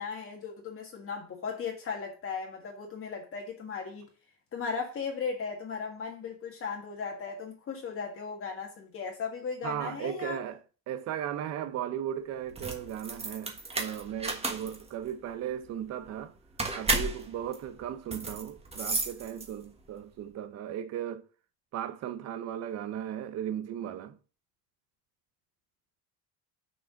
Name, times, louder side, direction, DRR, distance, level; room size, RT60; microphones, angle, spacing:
voice 1, 0.0-4.1 4.5-10.4, left 5 dB, 35° left, 1.6 m, -37 dB
voice 2, 9.6-10.6 10.9-16.3 16.7-21.2 21.7-24.2, right 10 dB, 40° right, 0.7 m, -36 dB
sound 1, 12.4-19.8, right 3 dB, 15° right, 1.4 m, -34 dB
6.3 x 4.9 x 6.3 m
cardioid pair, 145°, 38 cm